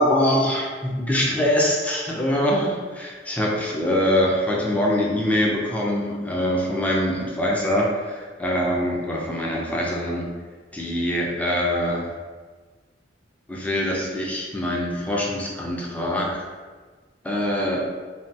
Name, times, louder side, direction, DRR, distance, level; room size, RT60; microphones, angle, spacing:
voice 1, 0.0-10.3 10.7-12.1 13.5-16.4 17.2-17.9, equal, 10° left, -3 dB, 0.4 m, -23 dB
3.2 x 2.2 x 2.6 m, 1.4 s
head